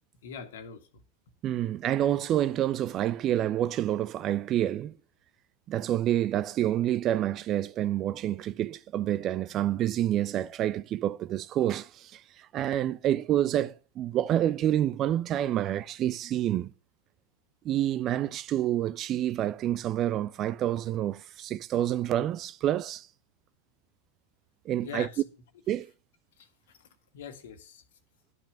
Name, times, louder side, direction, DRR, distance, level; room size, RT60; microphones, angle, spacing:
voice 1, 0.2-0.8 24.8-25.2 26.4-26.9 27.1-27.8, left 7 dB, 55° left, 1.9 m, -42 dB
voice 2, 1.4-4.9 5.7-16.7 17.6-23.1 24.7-25.1 25.7-25.9, right 12 dB, 30° right, 0.5 m, -28 dB
12.5 x 6.0 x 6.8 m
figure-of-eight pair, 90°, 0 cm